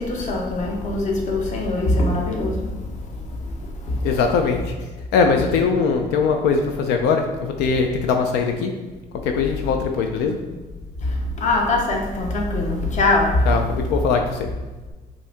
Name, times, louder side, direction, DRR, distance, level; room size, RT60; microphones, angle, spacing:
voice 1, 0.0-4.2 11.0-13.6 13.9-14.0, left 2 dB, 45° left, 0 dB, 0.9 m, -23 dB
voice 2, 4.0-4.6 5.1-8.7 9.2-10.4 13.5-14.5, left 5 dB, 85° left, 4 dB, 0.5 m, -21 dB
5.4 x 2.7 x 3.4 m, 1.2 s
cardioid pair, 110°, 17 cm